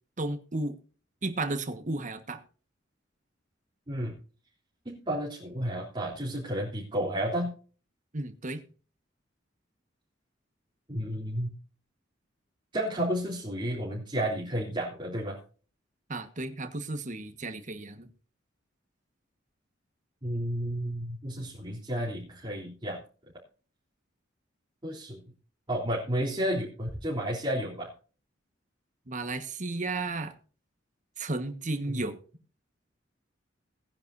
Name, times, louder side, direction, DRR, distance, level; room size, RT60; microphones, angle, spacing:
voice 1, 0.2-0.8 1.2-2.4 8.1-8.6 16.1-18.1 29.1-30.3 31.2-32.2, right 2 dB, 40° right, 1.4 m, -33 dB
voice 2, 4.9-7.5 10.9-11.5 12.7-15.4 20.2-23.0 24.8-25.2 25.7-27.9 31.9-32.1, equal, 25° right, 3.5 m, -32 dB
18.5 x 10.0 x 2.7 m
head